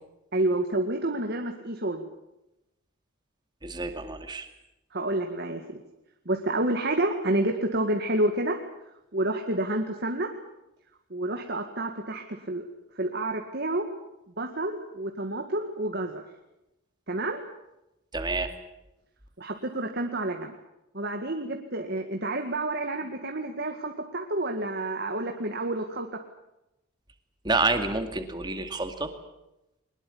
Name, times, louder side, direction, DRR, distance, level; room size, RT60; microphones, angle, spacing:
voice 1, 0.3-2.1 4.9-5.8 6.3-8.6 9.1-10.3 11.1-12.6 13.0-13.8 14.4-16.2 17.1-17.4 19.4-20.5 20.9-26.2, right 1 dB, 50° right, 4 dB, 2.0 m, -29 dB
voice 2, 3.6-4.5 18.1-18.5 27.4-29.1, right 3 dB, 20° right, 7 dB, 2.3 m, -28 dB
23.0 x 20.5 x 8.7 m, 0.91 s
head